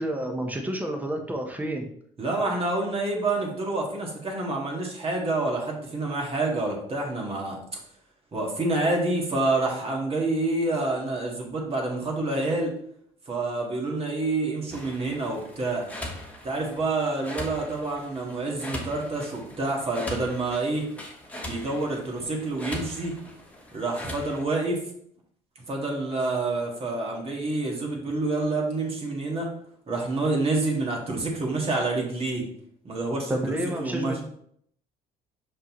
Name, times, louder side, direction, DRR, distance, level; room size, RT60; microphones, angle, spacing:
voice 1, 0.0-1.9 33.3-34.2, right 1 dB, 10° right, 3 dB, 1.0 m, -29 dB
voice 2, 2.2-7.6 8.3-12.7 13.3-15.9 16.4-20.9 21.4-23.1 23.7-24.8 25.7-29.5 29.9-32.5 32.8-34.2, right 2 dB, 35° right, -1 dB, 1.9 m, -28 dB
sound 1, 14.7-24.4, left 1 dB, 10° left, 1.3 m, -40 dB
5.8 x 5.3 x 3.1 m, 0.66 s
cardioid pair, 110°, 17 cm